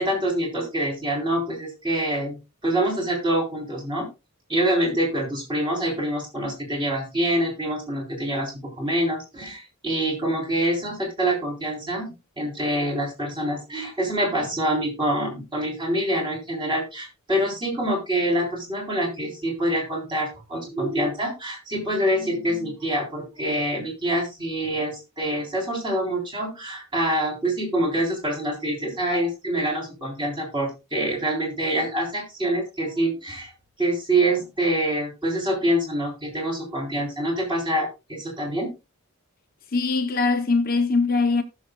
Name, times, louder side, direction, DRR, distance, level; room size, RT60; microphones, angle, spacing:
voice 1, 0.0-4.1 4.5-33.5 33.8-38.7, right 1 dB, 20° right, 3.5 m, -26 dB
voice 2, 39.7-41.4, left 3 dB, 40° left, 0.7 m, -21 dB
18.5 x 6.3 x 2.3 m
head